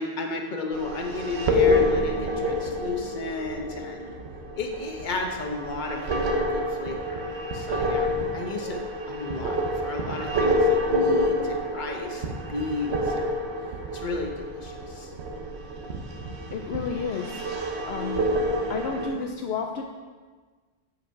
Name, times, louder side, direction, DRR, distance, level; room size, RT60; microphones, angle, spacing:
voice 1, 0.0-4.1 4.5-8.8 9.1-13.4 13.9-15.1, left 3 dB, 45° left, 2 dB, 1.0 m, -33 dB
sound 1, 0.7-19.1, left 1 dB, 75° right, 1.1 m, -28 dB
voice 2, 16.5-17.4 17.9-18.3 18.7-19.8, left 5 dB, 70° left, 2 dB, 0.8 m, -31 dB
7.6 x 5.4 x 4.6 m, 1.4 s
omnidirectional pair, 1.1 m